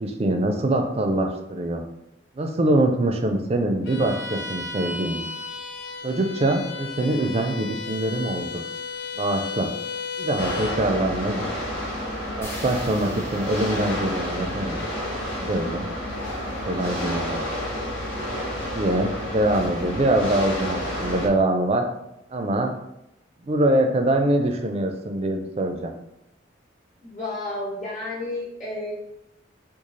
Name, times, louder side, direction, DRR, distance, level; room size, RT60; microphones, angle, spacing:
voice 1, 0.0-1.8 2.3-5.3 6.0-8.6 9.1-9.7 10.2-11.4 11.7-11.8 12.4-14.8 15.4-15.9 16.7-17.4 18.7-21.8 22.3-22.7 23.4-25.9, right 1 dB, 30° right, 4 dB, 0.4 m, -24 dB
Bowed string instrument, 3.8-10.9, left 4 dB, 60° left, 0.4 m, -34 dB
sound 1, 10.4-21.3, equal, 85° left, 1.1 m, -30 dB
sound 2, 12.4-16.5, left 1 dB, 15° left, 0.6 m, -44 dB
voice 2, 27.0-28.9, left 2 dB, 40° left, -6 dB, 1.1 m, -31 dB
3.1 x 2.3 x 3.8 m, 0.85 s
head